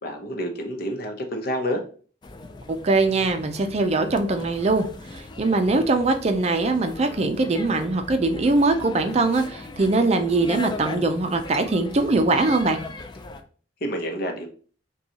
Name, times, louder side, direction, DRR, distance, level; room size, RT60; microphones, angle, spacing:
voice 1, 0.0-1.8 13.8-14.5, equal, 55° left, 4 dB, 0.8 m, -28 dB
sound 1, 2.2-13.4, left 3 dB, 25° left, 0.4 m, -39 dB
voice 2, 2.7-4.9 5.1-12.8, right 3 dB, 35° right, 6 dB, 0.4 m, -22 dB
5.4 x 2.3 x 2.8 m, 0.42 s
head